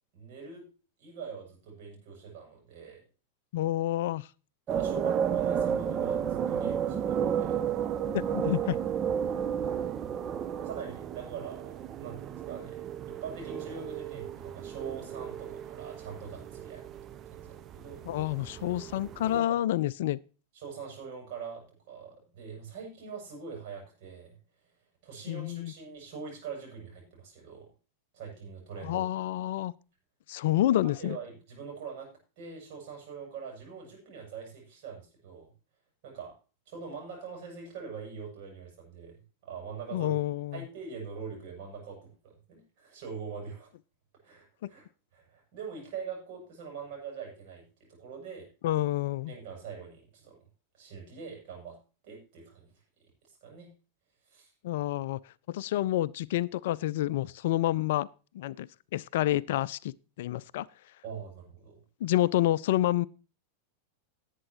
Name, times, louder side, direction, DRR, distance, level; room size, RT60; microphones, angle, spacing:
voice 1, 0.1-0.7 1.0-3.0 4.7-7.6 10.5-12.8 13.1-16.9 17.3-18.0 19.3-19.6 20.5-24.4 25.0-27.7 28.1-29.1 30.8-32.1 32.4-35.5 36.0-36.3 36.7-40.1 40.5-43.7 44.2-44.9 45.1-48.5 49.2-50.4 50.7-51.8 52.0-52.7 53.3-53.7 54.3-54.5 61.0-61.8, right 6 dB, 50° right, 7.5 m, -43 dB
voice 2, 3.5-4.3 8.1-8.8 18.1-20.2 25.3-25.7 28.8-29.7 30.3-31.2 39.9-40.6 48.6-49.3 54.6-55.2 55.5-58.1 58.3-60.7 62.0-63.1, left 14 dB, 55° left, 0.4 m, -28 dB
sound 1, 4.7-19.4, right 8 dB, 30° right, 0.7 m, -33 dB
18.5 x 8.3 x 3.0 m
figure-of-eight pair, 90°, 0 cm